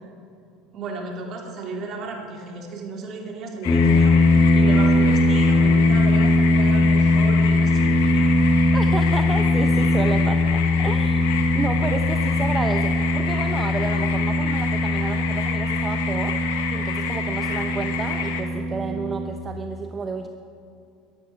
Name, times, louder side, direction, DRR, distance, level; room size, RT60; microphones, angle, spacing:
voice 1, 0.7-4.2 4.5-8.2, right 3 dB, 50° right, 0 dB, 3.2 m, -34 dB
sound 1, 3.6-18.4, left 8 dB, 75° left, 1.7 m, -30 dB
sound 2, 3.7-19.3, left 2 dB, 30° left, 2.4 m, -20 dB
voice 2, 8.7-11.3 11.5-16.4 16.7-20.3, right 4 dB, 25° right, 5 dB, 1.0 m, -31 dB
22.5 x 12.0 x 4.7 m, 2.5 s
hypercardioid pair, 80°, 0 cm